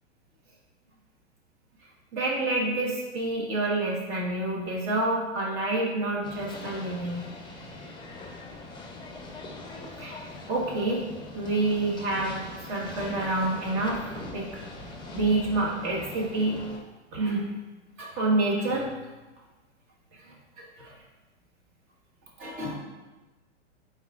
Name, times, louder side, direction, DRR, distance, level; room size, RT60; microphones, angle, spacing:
voice 1, 2.1-7.3 10.0-11.0 11.3-14.6 15.1-16.6 17.1-17.5 18.0-18.9 20.1-20.9 22.4-22.8, right 2 dB, 35° right, -3 dB, 1.8 m, -28 dB
sound 1, 6.2-16.8, left 2 dB, 10° left, 0.8 m, -42 dB
8.7 x 4.2 x 2.5 m, 1.2 s
hypercardioid pair, 115°, 35 cm